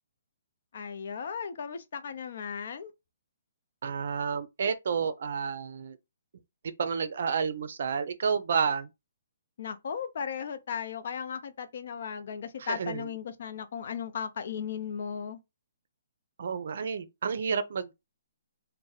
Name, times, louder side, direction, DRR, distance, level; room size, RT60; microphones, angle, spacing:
voice 1, 0.7-2.9 9.6-15.4, left 7 dB, 55° left, 0.5 m, -36 dB
voice 2, 3.8-6.0 6.8-8.9 12.6-13.2 16.4-17.9, right 6 dB, 60° right, 0.5 m, -30 dB
2.6 x 2.1 x 4.0 m
hypercardioid pair, 165°, 0 cm